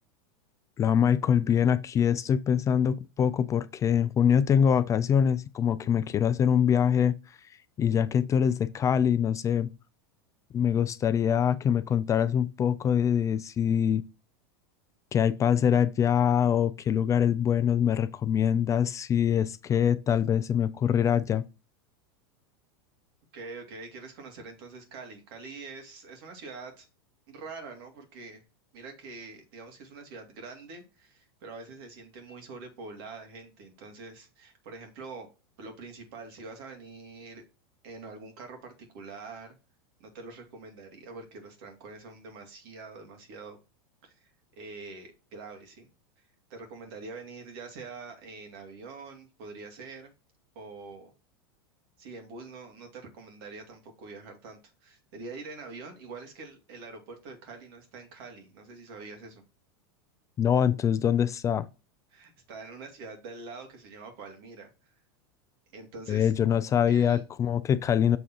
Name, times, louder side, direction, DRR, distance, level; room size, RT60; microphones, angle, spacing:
voice 1, 0.8-7.2 7.8-9.7 10.5-14.0 15.1-21.4 60.4-61.7 66.1-68.2, left 8 dB, 25° left, 0.4 m, -24 dB
voice 2, 23.3-26.9 27.3-28.4 28.7-35.3 35.6-37.4 37.8-39.6 40.0-43.6 44.0-45.9 46.5-50.1 50.5-51.1 52.0-59.4 62.1-64.9 65.7-66.3 66.9-67.2, right 3 dB, 65° right, 2.5 m, -45 dB
6.9 x 3.7 x 4.3 m
supercardioid pair, 120°, 13 cm